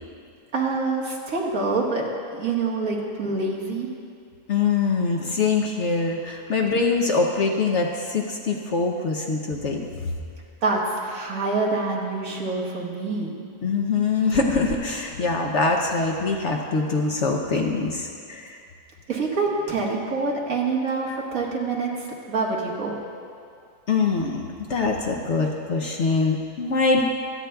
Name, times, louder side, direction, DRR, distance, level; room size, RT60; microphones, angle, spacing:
voice 1, 0.5-3.9 10.6-13.3 19.1-21.9 22.3-23.0, right 3 dB, 60° right, -3 dB, 1.9 m, -26 dB
voice 2, 4.5-10.1 13.6-18.6 21.1-21.2 23.9-27.0, left 4 dB, 55° left, 1 dB, 0.9 m, -24 dB
25.5 x 9.1 x 2.3 m, 2.3 s
omnidirectional pair, 1.7 m